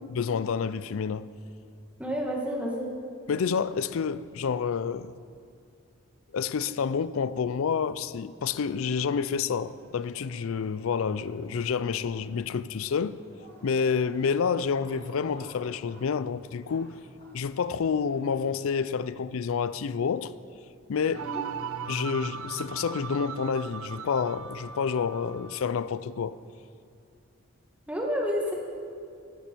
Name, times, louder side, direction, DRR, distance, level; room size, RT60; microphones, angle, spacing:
voice 1, 0.1-1.3 3.3-5.1 6.3-13.2 13.6-16.9 17.3-20.3 20.9-21.2 21.9-26.3, left 6 dB, 75° left, 0.4 m, -29 dB
voice 2, 2.0-2.9 21.2-21.4 27.9-28.5, equal, 5° right, 1.6 m, -29 dB
sound 1, 8.7-19.0, equal, 45° left, 3.3 m, -54 dB
sound 2, 21.1-25.7, right 6 dB, 80° right, 0.5 m, -38 dB
14.0 x 11.5 x 4.5 m
head